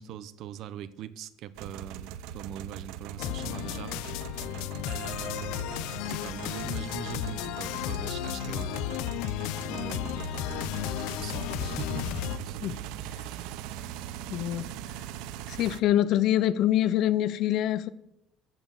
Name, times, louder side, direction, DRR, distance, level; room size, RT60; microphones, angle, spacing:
voice 1, 0.0-4.0 4.3-4.4 4.8-9.1 9.6-12.1 12.4-12.6, right 10 dB, 50° right, 0.8 m, -42 dB
sound 1, 1.5-15.8, right 9 dB, 85° right, 0.8 m, -40 dB
sound 2, 3.2-12.4, left 14 dB, 90° left, 0.6 m, -34 dB
voice 2, 14.3-14.7 15.5-17.9, left 12 dB, 50° left, 0.7 m, -25 dB
15.0 x 8.3 x 7.2 m
cardioid pair, 175°, 0 cm